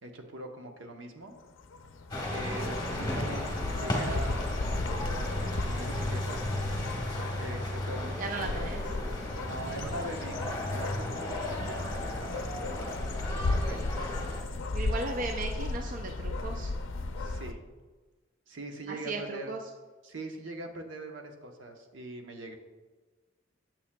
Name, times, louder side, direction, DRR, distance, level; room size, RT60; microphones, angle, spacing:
voice 1, 0.0-1.3 2.3-4.4 5.0-6.4 7.3-8.8 9.4-13.1 13.5-13.9 17.2-17.6 18.5-19.5 20.0-22.5, right 1 dB, 75° right, 4 dB, 0.9 m, -42 dB
sound 1, 1.4-17.5, left 2 dB, 80° left, 0.5 m, -35 dB
sound 2, 2.1-14.4, left 1 dB, 20° left, 1.1 m, -35 dB
voice 2, 8.2-8.8 14.7-16.7 18.9-19.6, right 3 dB, 45° right, 3 dB, 0.4 m, -36 dB
8.5 x 7.2 x 2.2 m, 1.3 s
head